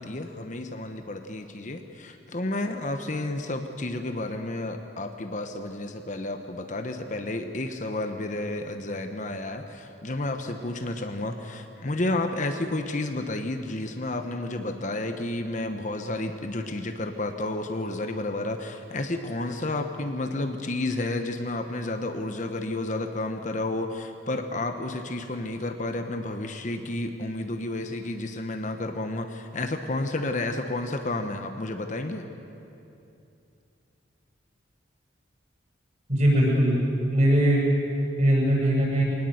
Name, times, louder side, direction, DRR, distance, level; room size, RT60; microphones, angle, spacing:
voice 1, 0.0-32.2, left 2 dB, 40° left, 6 dB, 1.0 m, -31 dB
voice 2, 36.1-36.8 37.1-37.6 38.2-39.0, equal, 40° right, -3 dB, 7.5 m, -20 dB
23.0 x 19.0 x 7.9 m, 2.8 s
head